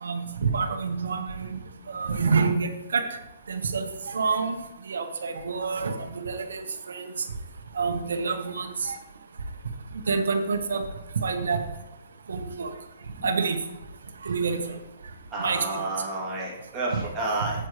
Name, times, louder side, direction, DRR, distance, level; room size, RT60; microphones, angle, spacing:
voice 1, 0.0-1.6 1.9-3.0 3.5-4.6 4.9-7.1 7.7-9.0 10.1-10.9 11.2-11.6 12.3-12.7 13.2-13.6 14.2-14.6 15.4-15.8 16.9-17.0, right 5 dB, 80° right, 6 dB, 1.2 m, -27 dB
voice 2, 15.3-17.5, right 2 dB, 10° right, -7 dB, 2.8 m, -30 dB
8.9 x 7.9 x 3.2 m, 0.99 s
hypercardioid pair, 160°, 0 cm